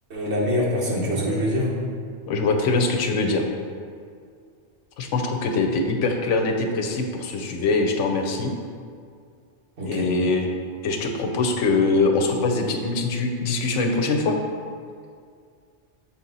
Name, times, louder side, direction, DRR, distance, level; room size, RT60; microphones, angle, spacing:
voice 1, 0.1-1.7 9.8-10.1, equal, 65° right, -4 dB, 1.5 m, -24 dB
voice 2, 2.3-3.4 5.0-8.5 9.8-10.5 10.8-14.4, left 3 dB, 85° left, 3 dB, 1.0 m, -23 dB
6.9 x 4.2 x 4.0 m, 2.2 s
omnidirectional pair, 1.2 m